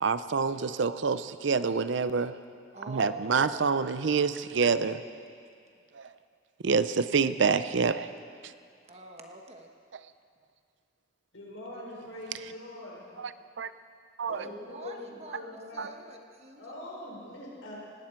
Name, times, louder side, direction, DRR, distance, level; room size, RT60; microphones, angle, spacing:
voice 1, 0.0-2.4 2.9-5.0 5.9-6.1 6.6-8.1 8.4-8.5 9.9-10.1 13.2-13.7 14.2-14.5 15.8-15.9, right 5 dB, 65° right, 13 dB, 0.5 m, -27 dB
voice 2, 2.7-3.7 8.9-9.7 14.3-15.4 15.7-16.6, right 2 dB, 35° right, 3 dB, 1.3 m, -45 dB
voice 3, 11.3-13.0 14.3-15.9 16.5-17.8, left 1 dB, 85° left, -4 dB, 5.1 m, -43 dB
18.5 x 17.0 x 4.5 m, 2.3 s
head